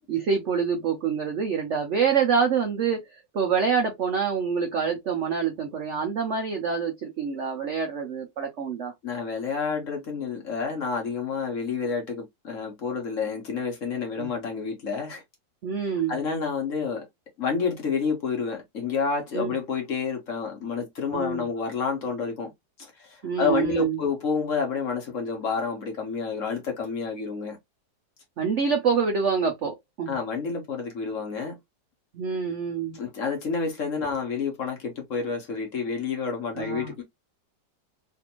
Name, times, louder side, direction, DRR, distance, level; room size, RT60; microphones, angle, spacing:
voice 1, 0.1-8.9 14.2-14.3 15.6-16.2 19.3-19.5 21.1-21.4 23.2-24.0 28.4-30.2 32.1-33.0 36.6-36.9, right 6 dB, 75° right, 0.6 m, -26 dB
voice 2, 9.0-15.2 16.1-17.0 17.4-22.5 23.0-27.6 30.1-31.6 32.9-37.0, left 5 dB, 50° left, 1.2 m, -29 dB
3.4 x 2.5 x 2.8 m
omnidirectional pair, 2.0 m